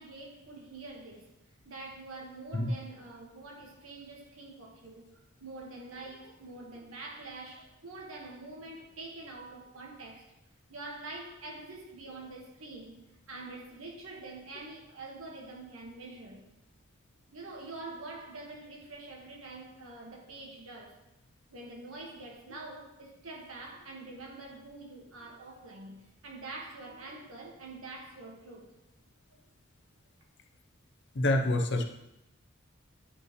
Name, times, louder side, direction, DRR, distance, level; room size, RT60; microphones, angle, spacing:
voice 1, 0.0-1.3 1.6-5.1 5.4-10.3 10.7-13.0 13.3-16.4 17.3-21.0 21.5-28.7 29.3-29.4, right 2 dB, 80° right, -1 dB, 1.6 m, -45 dB
voice 2, 31.1-31.8, left 1 dB, 55° left, 4 dB, 0.8 m, -27 dB
9.8 x 5.5 x 3.1 m, 0.88 s
head